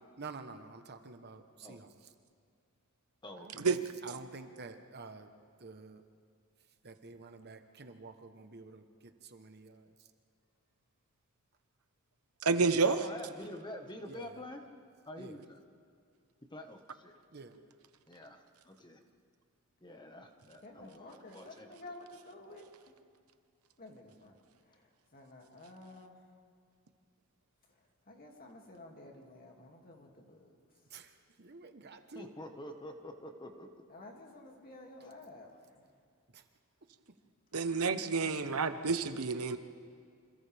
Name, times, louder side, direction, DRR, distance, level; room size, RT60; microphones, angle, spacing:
voice 1, 0.2-1.9 3.4-5.3 5.6-6.0 6.8-9.9 14.0-14.4 15.2-15.4 17.3-17.6 30.9-31.1 31.4-32.3 36.3-36.4, right 4 dB, 50° right, 7 dB, 1.2 m, -49 dB
voice 2, 3.2-3.7 12.8-14.6 15.0-15.6 16.5-17.1 18.1-19.0 19.8-21.9 32.1-33.8, left 1 dB, 20° left, 4 dB, 1.5 m, -47 dB
voice 3, 12.4-13.0 37.5-39.6, right 4 dB, 80° right, 9 dB, 1.0 m, -29 dB
voice 4, 20.6-22.7 23.8-24.3 25.1-26.2 28.1-30.5 33.9-35.5, left 2 dB, 45° left, 0 dB, 2.6 m, -51 dB
28.0 x 26.5 x 3.6 m, 2.3 s
head